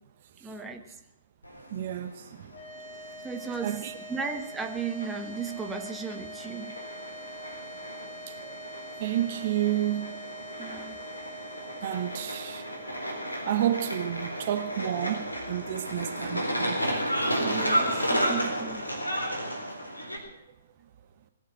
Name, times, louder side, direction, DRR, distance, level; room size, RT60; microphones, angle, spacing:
voice 1, 0.4-0.9 3.2-6.8 10.6-11.0 17.3-18.9, right 5 dB, 10° right, 1.3 m, -35 dB
sound 1, 1.4-20.2, equal, 90° left, 3.8 m, -33 dB
voice 2, 1.7-2.5 3.6-4.0 8.3-8.6 9.0-10.2 11.8-12.7 13.4-16.8, right 12 dB, 45° right, 1.0 m, -30 dB
sound 2, 2.5-16.9, right 1 dB, 40° left, 2.4 m, -46 dB
20.0 x 7.4 x 8.9 m
figure-of-eight pair, 125°, 0 cm